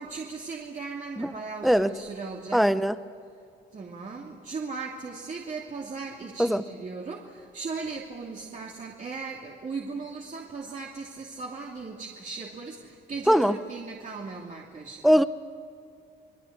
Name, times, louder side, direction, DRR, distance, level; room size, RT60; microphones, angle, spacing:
voice 1, 0.0-2.7 3.7-15.1, right 4 dB, 40° right, -1 dB, 2.7 m, -37 dB
voice 2, 2.5-3.0 6.4-6.6 13.3-13.6 15.0-15.2, equal, ahead, 12 dB, 1.0 m, -20 dB
28.0 x 21.5 x 8.7 m, 2.5 s
cardioid pair, 90°, 20 cm